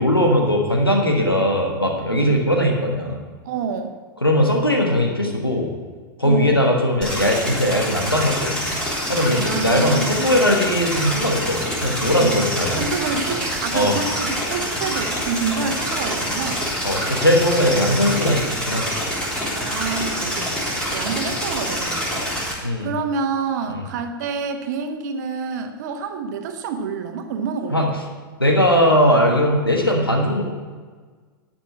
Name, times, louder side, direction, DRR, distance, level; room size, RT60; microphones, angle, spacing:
voice 1, 0.0-3.2 4.2-5.7 6.2-8.8 9.1-12.8 13.7-13.9 16.8-19.0 22.6-22.9 23.7-23.8 27.7-27.9 28.4-30.4, equal, 90° left, 1 dB, 1.4 m, -19 dB
voice 2, 3.4-3.9 6.2-6.6 9.4-10.3 12.2-16.6 19.5-27.9, right 5 dB, 50° right, 6 dB, 1.2 m, -28 dB
sound 1, 7.0-22.5, equal, 5° left, 3.8 m, -26 dB
12.0 x 6.0 x 7.3 m, 1.5 s
figure-of-eight pair, 95°, 12 cm